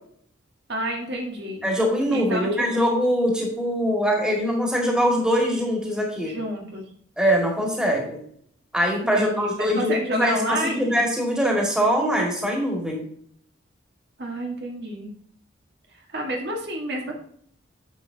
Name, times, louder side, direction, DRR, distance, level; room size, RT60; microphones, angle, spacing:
voice 1, 0.7-1.7 2.1-2.7 6.2-6.8 9.1-11.0 14.2-15.1 15.9-17.1, right 1 dB, 55° right, 0 dB, 1.7 m, -29 dB
voice 2, 1.6-6.4 7.2-8.2 8.7-13.0, equal, 5° right, -1 dB, 2.2 m, -23 dB
10.5 x 7.4 x 2.8 m, 0.63 s
head